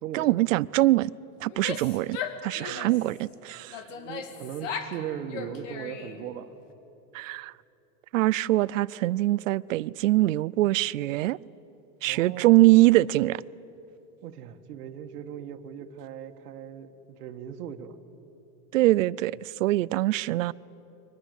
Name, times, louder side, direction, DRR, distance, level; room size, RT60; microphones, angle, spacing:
voice 1, 0.1-1.1 1.4-3.8 7.1-7.5 8.1-11.4 12.0-13.4 18.7-20.5, right 17 dB, 55° right, 0.5 m, -23 dB
Female speech woman speaking / Yell, 1.5-3.1 3.7-5.0 5.3-6.3, left 6 dB, 50° left, 2.2 m, -37 dB
voice 2, 3.9-6.5 12.1-12.6 14.2-18.0, right 9 dB, 75° right, 1.8 m, -38 dB
29.5 x 24.0 x 8.3 m
supercardioid pair, 175°, 46 cm